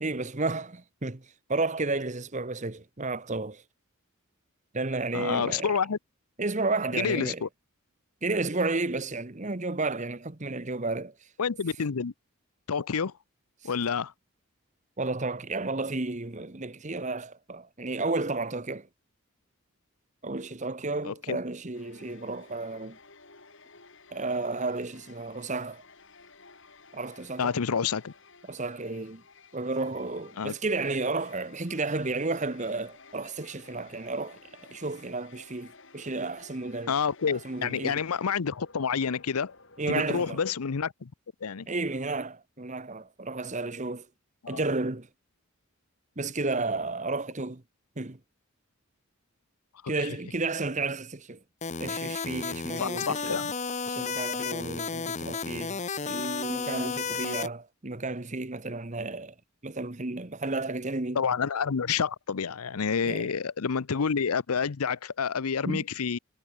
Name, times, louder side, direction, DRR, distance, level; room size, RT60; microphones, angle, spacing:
voice 1, 0.0-3.6 4.7-5.7 6.4-7.4 8.2-11.1 15.0-18.9 20.2-23.0 24.1-25.8 26.9-27.5 28.5-29.2 29.5-36.9 37.3-38.0 39.8-40.4 41.7-44.1 44.5-45.1 46.2-47.6 48.0-48.2 49.9-51.4 51.8-53.4 53.9-59.3 59.6-61.2 63.0-63.3 65.6-65.8, right 3 dB, 35° right, 1.2 m, -32 dB
voice 2, 5.1-6.0 7.0-7.5 11.4-12.1 12.7-13.1 13.6-14.1 21.0-21.4 27.4-28.1 30.4-30.5 36.9-39.5 39.9-41.1 41.4-41.7 44.4-44.6 52.8-53.5 61.1-66.2, left 6 dB, 85° left, 0.7 m, -28 dB
sound 1, 21.7-40.5, left 4 dB, 55° left, 6.2 m, -54 dB
sound 2, 51.6-57.5, left 5 dB, 30° left, 0.9 m, -33 dB
head